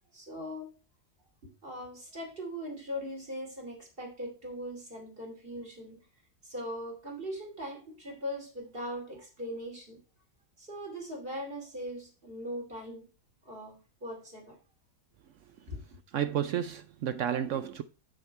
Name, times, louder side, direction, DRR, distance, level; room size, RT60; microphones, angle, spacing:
voice 1, 0.1-0.7 1.4-6.0 6.4-10.0 10.6-13.1 13.4-14.6 15.7-15.8, equal, 30° right, 2.8 m, -40 dB
voice 2, 16.1-17.8, right 9 dB, 80° right, 0.6 m, -31 dB
8.0 x 6.4 x 4.5 m
omnidirectional pair, 1.9 m